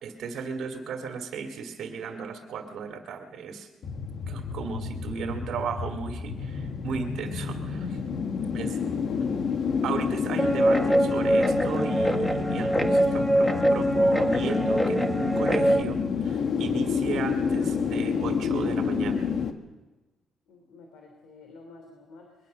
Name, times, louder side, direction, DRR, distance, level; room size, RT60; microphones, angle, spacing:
voice 1, 0.0-3.7 4.3-8.0 8.5-8.8 9.2-9.6 9.8-19.3, right 5 dB, 70° right, 4 dB, 2.3 m, -35 dB
sound 1, 3.8-19.5, left 6 dB, 65° left, 1.7 m, -29 dB
voice 2, 9.1-9.4 20.5-22.5, left 3 dB, 80° left, 3 dB, 3.4 m, -50 dB
Guitar, 10.4-15.8, equal, 10° left, 1.7 m, -23 dB
22.5 x 21.5 x 6.7 m, 1.1 s
cardioid pair, 90°, 0 cm